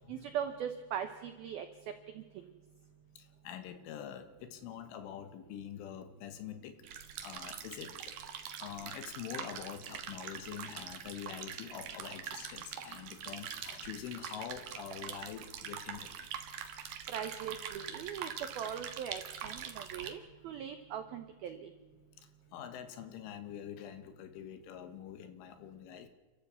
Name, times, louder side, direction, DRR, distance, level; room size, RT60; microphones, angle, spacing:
voice 1, 0.1-1.7 2.2-2.3 17.1-18.3 18.6-21.7, right 8 dB, 90° right, 8 dB, 2.1 m, -40 dB
voice 2, 3.2-6.8 7.2-8.2 8.6-16.1 20.0-20.1 22.2-26.1, left 10 dB, 75° left, 10 dB, 3.7 m, -45 dB
sound 1, 6.8-20.1, right 8 dB, 60° right, 2.3 m, -44 dB
29.5 x 13.0 x 8.3 m, 1.3 s
omnidirectional pair, 5.9 m